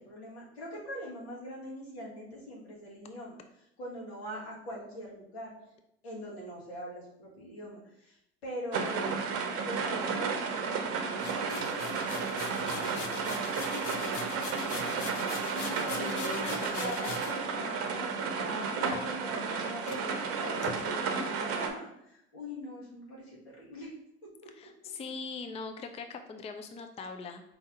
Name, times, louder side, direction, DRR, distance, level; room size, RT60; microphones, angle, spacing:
voice 1, 0.0-3.4 3.8-5.5 6.0-9.2 9.6-23.9 24.2-24.7, equal, 90° left, -4 dB, 1.6 m, -42 dB
sound 1, 8.7-21.7, right 5 dB, 50° right, 0.7 m, -33 dB
sound 2, 11.2-17.4 18.9-19.5 19.9-20.0 20.6-20.8, left 5 dB, 65° left, 0.7 m, -41 dB
voice 2, 16.0-17.1 20.0-20.2 24.6-27.4, left 4 dB, 20° left, 6 dB, 0.4 m, -41 dB
4.5 x 2.7 x 3.7 m, 0.79 s
hypercardioid pair, 80°, 31 cm